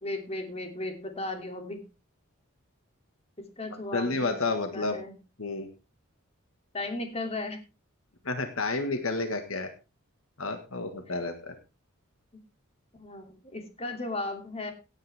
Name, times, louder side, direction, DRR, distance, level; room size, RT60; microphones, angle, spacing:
voice 1, 0.0-1.8 3.4-4.3 4.7-5.1 6.7-7.6 11.1-11.2 13.0-14.7, left 2 dB, 30° left, 5 dB, 2.8 m, -36 dB
voice 2, 3.9-5.0 5.4-5.7 8.3-9.7 10.4-11.6, left 3 dB, 70° left, 7 dB, 1.7 m, -30 dB
17.5 x 9.1 x 3.5 m, 0.31 s
head